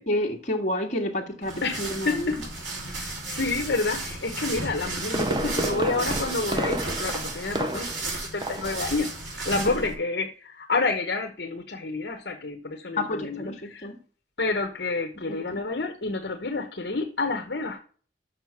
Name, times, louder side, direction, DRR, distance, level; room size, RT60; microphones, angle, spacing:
voice 1, 0.0-2.3 8.7-8.8 9.6-9.8 13.0-14.0 15.3-15.6, left 1 dB, 40° left, 1.8 m, -30 dB
sound 1, 1.4-9.9, right 2 dB, 80° right, 3.5 m, -34 dB
voice 2, 1.6-2.4 3.0-9.1 9.4-13.9 14.4-17.8, left 3 dB, 65° left, 1.1 m, -29 dB
Fireworks, 4.7-8.1 8.4-8.8 9.1-9.2, right 1 dB, 25° right, 0.7 m, -30 dB
6.7 x 6.5 x 5.9 m
head